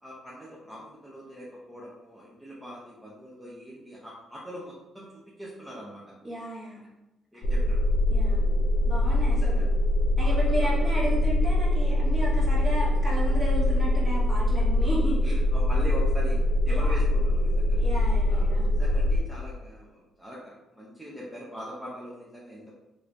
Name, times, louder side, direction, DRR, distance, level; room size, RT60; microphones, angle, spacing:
voice 1, 0.0-5.1 5.4-6.0 7.3-7.8 9.3-9.7 10.2-10.7 15.3-17.8 18.3-18.5 18.8-22.7, equal, 5° right, -7 dB, 0.7 m, -42 dB
voice 2, 6.2-6.8 7.3-7.4 8.1-8.4 8.8-9.6 10.2-15.5 16.7-16.9 17.7-18.7, right 1 dB, 30° right, -5 dB, 1.3 m, -33 dB
sound 1, 7.4-19.2, left 1 dB, 70° left, 0.4 m, -23 dB
2.9 x 2.5 x 3.1 m, 0.93 s
cardioid pair, 90°, 0 cm